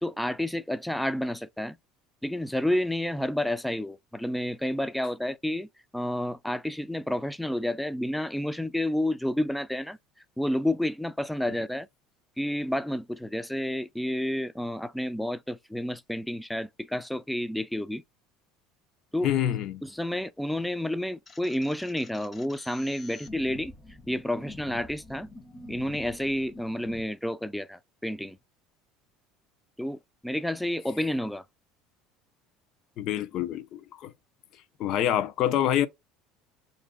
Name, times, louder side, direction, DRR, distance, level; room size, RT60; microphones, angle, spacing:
voice 1, 0.0-1.8 2.2-10.0 10.4-11.9 12.4-18.0 19.1-19.3 19.8-23.7 24.1-25.3 25.7-28.4 29.8-31.4, left 1 dB, 5° left, 0.4 m, -30 dB
voice 2, 19.2-19.8 33.0-34.1 34.8-35.9, left 11 dB, 55° left, 0.7 m, -26 dB
sound 1, 21.3-27.0, left 2 dB, 30° left, 0.8 m, -47 dB
6.8 x 2.7 x 2.4 m
supercardioid pair, 100°, 0 cm